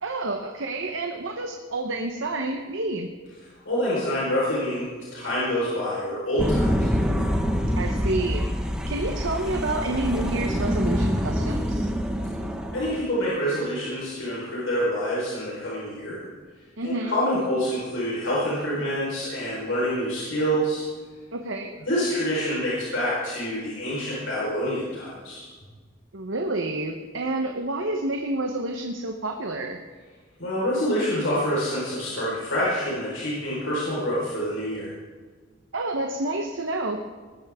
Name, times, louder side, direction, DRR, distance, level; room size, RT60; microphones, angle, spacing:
voice 1, 0.0-3.1 7.8-8.5 8.9-11.9 16.8-17.1 21.3-21.8 26.1-29.8 35.7-37.0, right 2 dB, 70° right, 3 dB, 1.1 m, -29 dB
voice 2, 3.6-6.9 12.7-16.2 16.8-20.8 21.8-25.5 30.4-34.9, equal, 80° left, -7 dB, 4.7 m, -27 dB
sound 1, 6.4-13.0, equal, 5° right, 1.2 m, -26 dB
19.5 x 13.5 x 3.7 m, 1.5 s
head